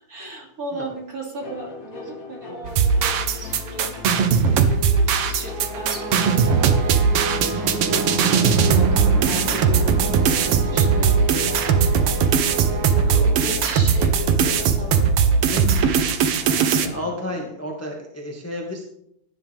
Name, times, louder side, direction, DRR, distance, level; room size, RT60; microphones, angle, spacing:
voice 1, 0.1-4.2 4.5-8.1 8.5-11.9 13.1-15.1, equal, 25° right, -2 dB, 3.0 m, -36 dB
sound 1, 1.4-17.4, left 2 dB, 55° left, 3.8 m, -40 dB
sound 2, 2.6-16.9, right 6 dB, 75° right, 1.4 m, -19 dB
sound 3, 5.5-13.9, right 4 dB, 50° right, 1.7 m, -29 dB
voice 2, 12.7-13.5 15.5-15.9 16.5-18.8, left 1 dB, 10° left, 0 dB, 0.6 m, -32 dB
17.0 x 10.5 x 3.6 m, 0.75 s
omnidirectional pair, 3.9 m